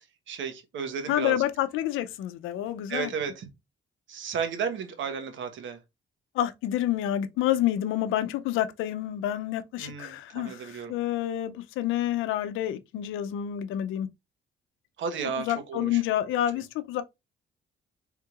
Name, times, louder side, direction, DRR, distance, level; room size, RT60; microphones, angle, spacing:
voice 1, 0.3-1.4 2.9-3.5 4.1-5.8 9.8-10.9 15.0-16.0, right 6 dB, 75° right, 1.1 m, -33 dB
voice 2, 1.1-3.1 6.3-14.1 15.4-17.0, left 12 dB, 90° left, 0.6 m, -28 dB
4.6 x 3.6 x 2.4 m
cardioid pair, 90°, 20 cm